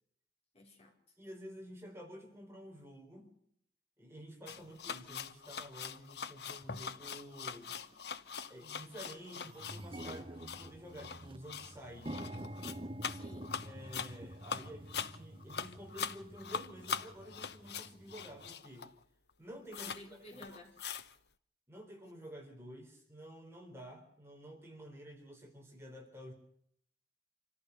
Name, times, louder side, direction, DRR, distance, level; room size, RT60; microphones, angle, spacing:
voice 1, 0.5-1.1 13.1-13.5 14.5-14.7 19.7-20.7, left 1 dB, 35° left, 0 dB, 4.8 m, -53 dB
voice 2, 1.2-3.3 4.0-7.8 8.5-12.2 13.6-18.9 19.4-19.9 21.7-26.3, equal, 15° right, 1 dB, 3.9 m, -50 dB
sound 1, 4.5-19.0 19.3-19.4 19.7-20.0 20.3-21.2, left 6 dB, 65° left, 0.9 m, -42 dB
sound 2, 7.0-7.1 7.8-8.1 8.5-8.6 8.8-18.5, right 1 dB, 30° right, 0.9 m, -48 dB
26.5 x 14.5 x 6.8 m, 0.67 s
head